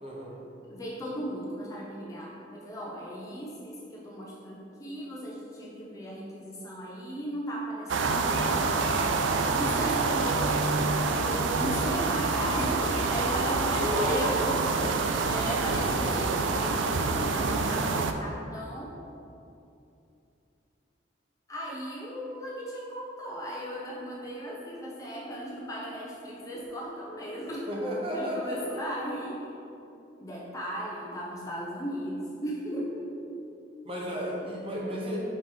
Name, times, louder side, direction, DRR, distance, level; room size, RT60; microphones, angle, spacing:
voice 1, 0.0-0.4 13.7-14.3 27.7-28.8 33.8-35.2, equal, 30° right, -4 dB, 1.0 m, -32 dB
voice 2, 0.7-9.0 9.2-19.0 21.5-27.7 28.1-29.5 30.2-33.2, equal, 15° left, -4 dB, 0.7 m, -37 dB
sound 1, 7.9-18.1, right 3 dB, 75° right, 0.4 m, -27 dB
5.1 x 3.9 x 5.5 m, 2.7 s
head